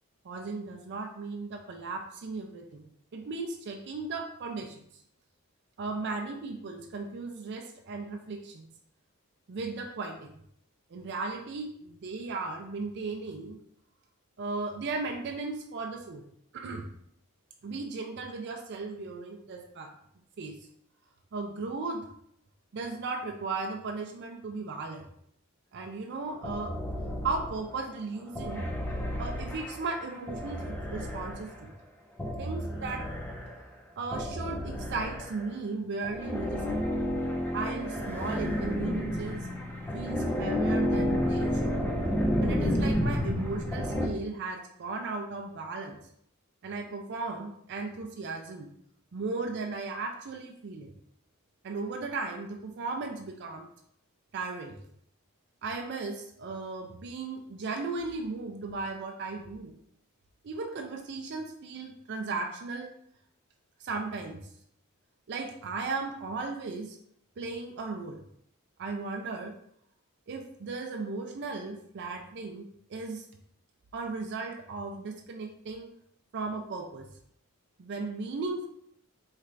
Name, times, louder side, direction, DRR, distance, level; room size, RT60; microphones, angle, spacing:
voice 1, 0.2-5.0 5.8-8.7 9.5-10.4 10.9-13.6 14.4-16.2 16.5-16.9 17.6-20.0 20.4-20.6 21.3-22.1 22.7-25.0 25.7-26.8 27.2-28.7 29.2-31.7 32.4-33.1 34.0-36.8 37.5-39.5 39.9-41.8 42.4-46.0 46.6-48.7 49.1-50.9 51.6-53.7 54.3-54.8 55.6-59.7 60.4-62.9 63.8-64.4 65.3-67.0 67.4-68.2 68.8-69.6 70.3-72.6 72.9-73.2 73.9-75.9 76.3-77.1 77.8-78.7, right 3 dB, 50° right, 3 dB, 0.4 m, -36 dB
sound 1, 26.4-27.8 28.4-31.6 32.2-33.6 34.1-35.5 36.0-44.1, equal, 10° left, 0.4 m, -31 dB
4.4 x 3.3 x 2.5 m, 0.71 s
head